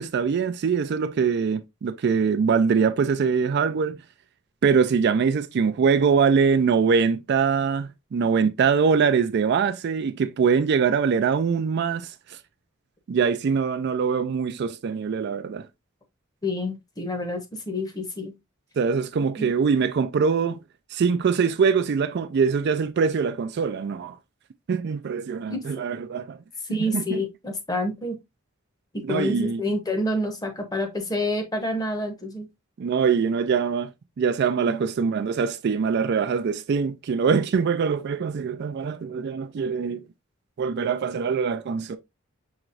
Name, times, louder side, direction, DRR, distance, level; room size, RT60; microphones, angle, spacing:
voice 1, 0.0-4.0 4.6-12.1 13.1-15.7 18.8-20.6 20.9-24.2 24.7-26.4 26.7-27.2 29.0-29.6 32.8-33.9 34.2-40.0 40.6-42.0, right 6 dB, 55° right, 0.4 m, -23 dB
voice 2, 16.4-18.3 19.4-19.5 25.5-25.6 26.6-28.2 28.9-32.5 34.7-34.8, left 1 dB, 20° left, 0.8 m, -28 dB
5.8 x 3.0 x 2.5 m
head